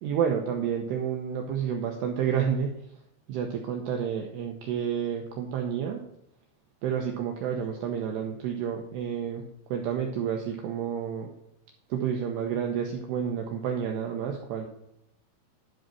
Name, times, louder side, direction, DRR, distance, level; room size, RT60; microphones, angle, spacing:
voice 1, 0.0-2.7 3.3-6.0 6.8-9.4 9.7-11.3 11.9-14.7, right 8 dB, 90° right, 2 dB, 2.4 m, -30 dB
11.5 x 5.2 x 6.1 m, 0.79 s
omnidirectional pair, 5.9 m